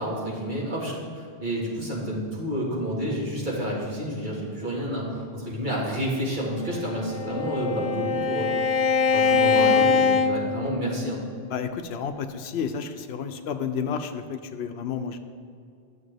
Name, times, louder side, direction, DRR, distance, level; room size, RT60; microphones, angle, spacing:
voice 1, 0.0-8.5 9.1-11.2, equal, 50° right, -4 dB, 1.9 m, -29 dB
Bowed string instrument, 6.7-11.2, left 5 dB, 55° left, 0.4 m, -23 dB
voice 2, 11.5-15.2, left 6 dB, 80° left, 8 dB, 0.8 m, -31 dB
11.0 x 6.9 x 3.4 m, 2.4 s
omnidirectional pair, 1.1 m